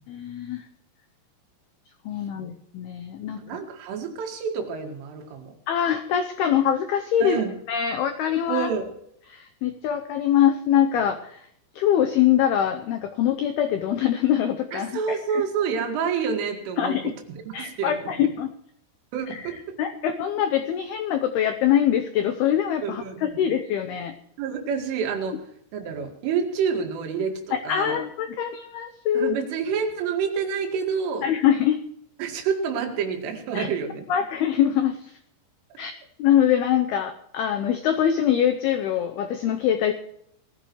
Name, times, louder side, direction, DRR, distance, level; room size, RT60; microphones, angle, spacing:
voice 1, 0.1-0.7 2.1-3.4 5.7-7.4 7.7-8.7 9.3-11.5 11.8-15.4 16.8-17.1 17.5-18.5 19.3-19.4 19.8-24.1 27.5-29.3 31.2-31.8 33.5-33.7 34.1-35.2 35.8-35.9 36.2-39.9, left 10 dB, 85° left, 7 dB, 2.2 m, -23 dB
voice 2, 3.4-5.5 7.2-7.6 8.5-8.9 14.7-17.0 17.5-18.1 19.1-19.8 22.8-23.4 24.4-25.4 25.7-28.0 29.1-31.3 32.2-34.0, right 6 dB, 80° right, 4 dB, 4.5 m, -28 dB
20.5 x 14.5 x 3.1 m, 0.74 s
omnidirectional pair, 5.6 m